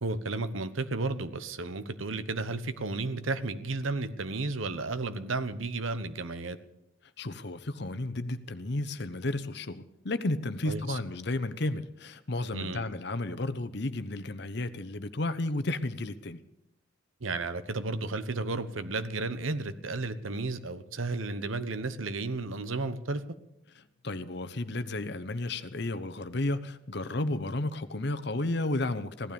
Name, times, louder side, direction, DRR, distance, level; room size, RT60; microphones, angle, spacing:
voice 1, 0.0-6.6 10.7-11.0 12.5-12.9 17.2-23.2, right 3 dB, 80° right, 13 dB, 1.0 m, -33 dB
voice 2, 7.2-16.4 23.8-29.3, left 2 dB, 55° left, 13 dB, 0.9 m, -33 dB
16.5 x 12.5 x 7.0 m, 0.87 s
head